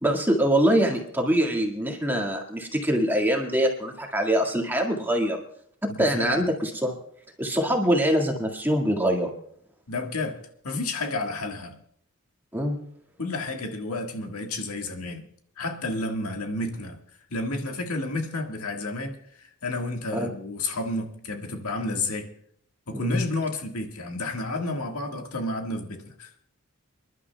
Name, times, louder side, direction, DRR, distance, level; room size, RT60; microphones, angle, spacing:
voice 1, 0.0-5.4 6.0-6.9 7.4-9.3 12.5-12.8 20.2-20.3 22.9-23.2, right 1 dB, 10° right, 1 dB, 1.8 m, -24 dB
voice 2, 5.9-6.5 9.9-10.4 10.6-11.8 13.2-15.3 15.6-17.0 17.3-22.3 22.9-26.3, left 2 dB, 80° left, 3 dB, 1.7 m, -31 dB
29.5 x 11.5 x 2.3 m, 0.64 s
head